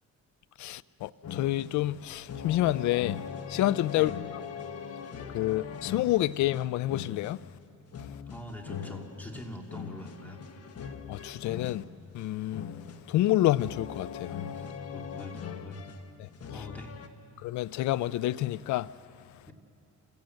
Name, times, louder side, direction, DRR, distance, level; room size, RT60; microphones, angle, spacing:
voice 1, 0.6-3.2 3.5-4.1 5.3-7.4 11.1-11.8 12.1-12.7 13.1-14.4 17.4-18.9, left 15 dB, 75° left, 0.5 m, -28 dB
sound 1, 1.2-17.1, left 7 dB, 55° left, 1.3 m, -41 dB
voice 2, 8.3-10.4 14.5-15.9 16.5-17.0 19.5-19.6, left 1 dB, 5° left, 2.6 m, -43 dB
27.5 x 16.0 x 7.8 m
cardioid pair, 120°, 30 cm